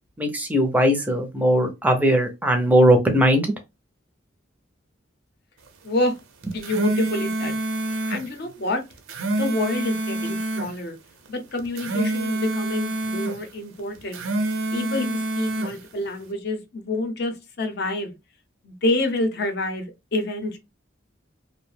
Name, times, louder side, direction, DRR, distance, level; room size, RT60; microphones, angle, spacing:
voice 1, 0.2-3.5, equal, 10° right, 0.5 m, -19 dB
voice 2, 5.8-6.1 6.5-7.6 8.1-8.8 9.3-11.0 11.3-14.2 14.7-18.1 18.6-20.6, left 2 dB, 50° left, 0.6 m, -27 dB
sound 1, 6.4-8.2 8.9-10.7 11.6-13.4 14.0-15.7, right 1 dB, 85° right, 0.6 m, -27 dB
2.6 x 2.1 x 3.2 m
head